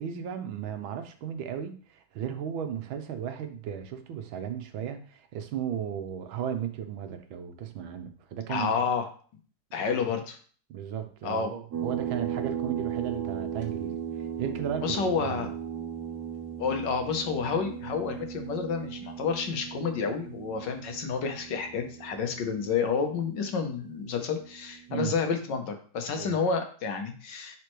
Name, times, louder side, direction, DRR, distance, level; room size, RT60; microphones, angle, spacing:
voice 1, 0.0-8.8 9.9-10.0 10.7-15.5 24.9-25.1 26.1-26.4, right 9 dB, 85° right, 7 dB, 1.6 m, -35 dB
voice 2, 8.5-9.1 9.7-10.4 11.2-11.5 14.8-15.5 16.6-27.6, left 5 dB, 65° left, 6 dB, 1.5 m, -30 dB
sound 1, 11.7-24.8, right 8 dB, 55° right, 1.4 m, -37 dB
10.5 x 4.3 x 3.1 m, 0.43 s
omnidirectional pair, 2.2 m